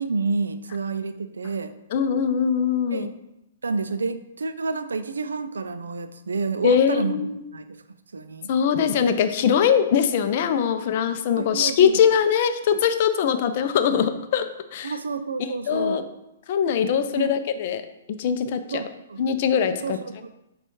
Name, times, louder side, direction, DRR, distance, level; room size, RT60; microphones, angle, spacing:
voice 1, 0.0-1.7 2.9-3.2 3.6-7.8 8.1-8.5 11.4-12.0 14.8-16.0 17.1-17.3 18.7-19.2 19.8-20.3, right 4 dB, 85° right, 11 dB, 0.3 m, -29 dB
voice 2, 1.9-3.1 6.6-7.4 8.5-14.9 15.7-16.1 16.5-17.8 18.2-18.8 19.2-20.0, left 7 dB, 50° left, 9 dB, 0.4 m, -22 dB
6.7 x 2.3 x 3.0 m, 0.91 s
hypercardioid pair, 130°, 0 cm